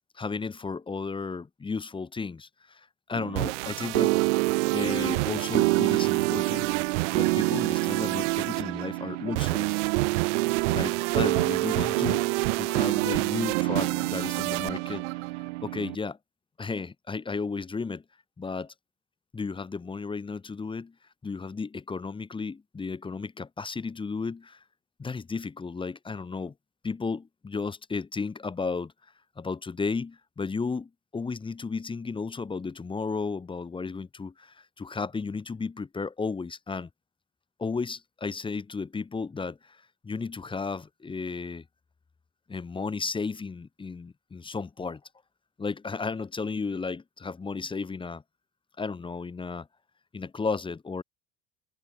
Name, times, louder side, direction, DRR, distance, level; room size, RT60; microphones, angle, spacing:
voice 1, 0.2-4.2 4.7-6.7 7.1-9.8 10.7-15.1 15.6-16.2 16.6-18.0 18.4-18.7 19.3-20.9 21.2-24.6 25.0-26.5 26.8-28.9 29.4-36.9 37.6-41.6 42.5-45.0 45.6-48.2 48.8-49.7 50.1-51.0, left 4 dB, 15° left, 1.7 m, -34 dB
sound 1, 3.2-16.0, right 23 dB, 90° right, 3.6 m, -26 dB
cardioid pair, 140°, 35 cm